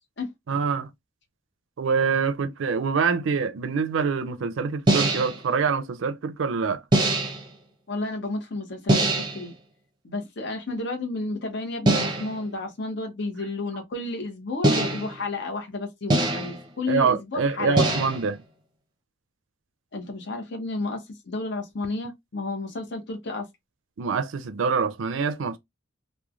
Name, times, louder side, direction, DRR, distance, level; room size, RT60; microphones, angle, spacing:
voice 1, 0.5-0.9 1.8-6.8 16.9-18.4 24.0-25.6, right 5 dB, 70° right, 0.4 m, -25 dB
sound 1, 4.9-5.4 6.9-7.5 8.9-9.5 11.9-12.4 14.6-15.3 16.1-16.7 17.8-18.3, right 1 dB, 20° right, 0.6 m, -23 dB
voice 2, 7.9-9.5 10.0-17.8 19.9-23.5, left 2 dB, 60° left, 0.8 m, -32 dB
3.0 x 2.1 x 2.4 m
head